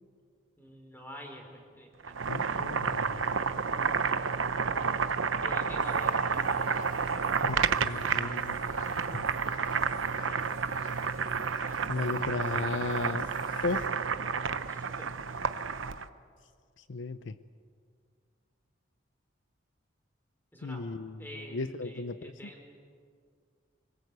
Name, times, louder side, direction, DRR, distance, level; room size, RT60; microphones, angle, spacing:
voice 1, 0.6-2.2 5.3-6.6 7.0-7.8 14.7-15.2 20.5-20.9 21.2-22.8, equal, 10° left, 2 dB, 4.1 m, -47 dB
Boiling, 2.0-16.1, right 5 dB, 85° right, 0.9 m, -30 dB
voice 2, 2.3-3.2 7.4-8.7 9.1-9.2 11.9-13.3 13.6-13.9 16.8-17.4 20.6-21.3 21.5-22.3, left 3 dB, 75° left, 13 dB, 0.6 m, -35 dB
sound 1, 5.8-13.9, left 3 dB, 40° left, 2.5 m, -51 dB
25.0 x 21.5 x 8.2 m, 2.1 s
head